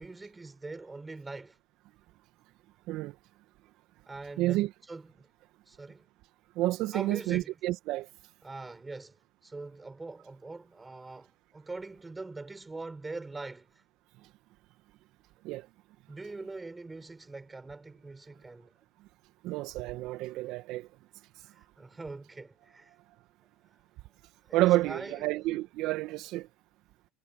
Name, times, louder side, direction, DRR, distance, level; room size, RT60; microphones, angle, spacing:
voice 1, 0.0-1.6 4.1-5.3 5.7-6.0 6.9-7.5 8.4-9.2 9.4-13.8 16.1-18.7 21.5-22.9 24.5-25.4, right 3 dB, 15° right, 6.7 m, -43 dB
voice 2, 4.4-4.7 6.6-8.1 15.4-15.7 19.4-20.9 24.5-26.5, right 17 dB, 60° right, 2.0 m, -29 dB
hypercardioid pair, 80°, 0 cm